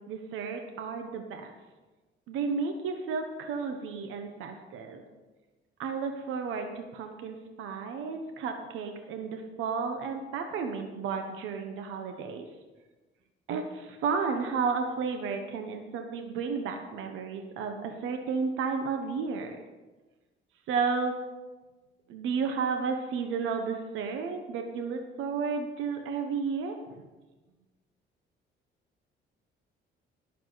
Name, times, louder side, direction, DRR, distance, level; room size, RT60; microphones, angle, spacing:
voice 1, 0.1-1.5 2.3-5.0 5.8-12.4 13.5-19.6 20.7-21.1 22.1-26.8, right 5 dB, 90° right, 5 dB, 1.1 m, -32 dB
18.5 x 7.2 x 4.0 m, 1.2 s
cardioid pair, 90°, 20 cm